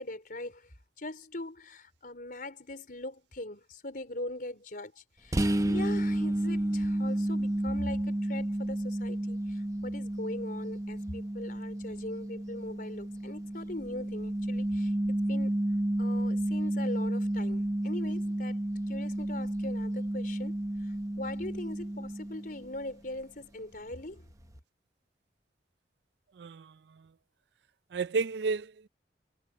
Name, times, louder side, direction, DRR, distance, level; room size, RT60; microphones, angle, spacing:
voice 1, 0.0-15.6 16.0-24.3, left 1 dB, 50° left, 4.6 m, -41 dB
sound 1, 5.3-22.8, right 1 dB, 20° right, 0.8 m, -31 dB
voice 2, 26.4-27.1 27.9-28.9, right 4 dB, 70° right, 0.4 m, -32 dB
head